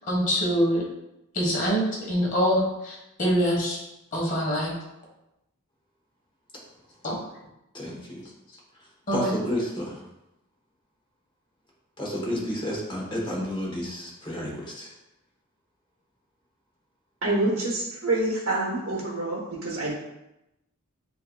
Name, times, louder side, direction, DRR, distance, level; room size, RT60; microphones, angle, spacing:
voice 1, 0.1-0.8 1.3-3.8 4.1-4.7 7.0-7.2 9.1-9.3, equal, 35° left, -4 dB, 1.2 m, -24 dB
voice 2, 7.7-8.2 8.8-10.0 12.0-14.9 17.5-17.6, equal, 20° left, -4 dB, 1.1 m, -31 dB
voice 3, 17.2-19.9, right 2 dB, 70° right, -5 dB, 0.9 m, -27 dB
7.4 x 2.6 x 2.3 m, 0.90 s
head